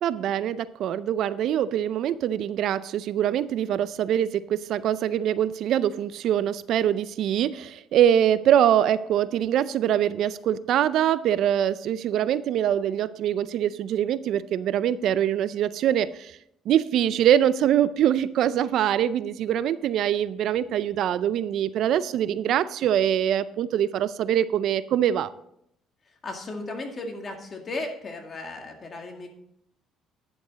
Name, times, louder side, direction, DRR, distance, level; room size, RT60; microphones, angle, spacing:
voice 1, 0.0-16.4 16.7-25.3, right 10 dB, 70° right, 16 dB, 0.4 m, -24 dB
voice 2, 26.2-29.3, left 2 dB, 35° left, 3 dB, 2.0 m, -35 dB
10.5 x 7.1 x 4.0 m, 0.74 s
cardioid pair, 95°, 0 cm